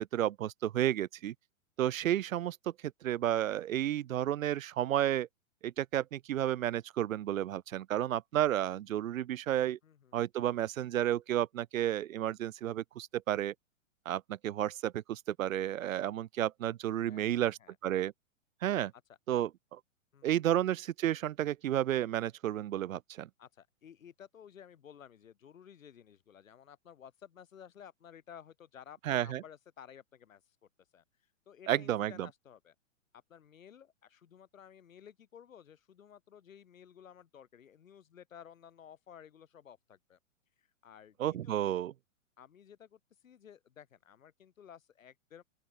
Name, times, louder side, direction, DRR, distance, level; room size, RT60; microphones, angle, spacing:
voice 1, 0.0-1.3 1.8-2.6 3.0-5.3 5.6-9.8 10.1-13.5 14.1-17.6 17.8-18.1 18.6-18.9 19.3-19.8 20.2-23.3 29.1-29.4 31.7-32.3 41.2-41.9, right 12 dB, 80° right, 0.7 m, -32 dB
voice 2, 9.8-10.2 17.1-17.8 19.1-19.2 20.1-20.4 23.4-30.4 30.9-31.0 31.5-32.7 33.3-40.2 40.6-41.2 41.4-41.8 42.4-45.4, left 8 dB, 80° left, 4.9 m, -55 dB
open air
hypercardioid pair, 125°, 40 cm